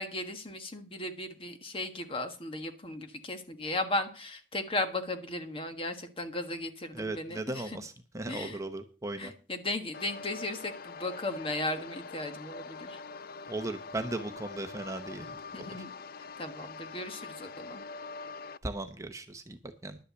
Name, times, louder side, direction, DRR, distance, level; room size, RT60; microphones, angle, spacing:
voice 1, 0.0-7.8 8.3-8.6 9.2-13.0 15.5-15.9 16.4-17.8, left 2 dB, 30° left, 7 dB, 1.5 m, -36 dB
voice 2, 6.9-9.3 13.5-15.7 18.6-20.0, right 2 dB, 15° right, 7 dB, 0.9 m, -37 dB
sound 1, 9.9-18.6, left 4 dB, 55° left, 0.4 m, -44 dB
11.5 x 5.6 x 8.0 m, 0.37 s
head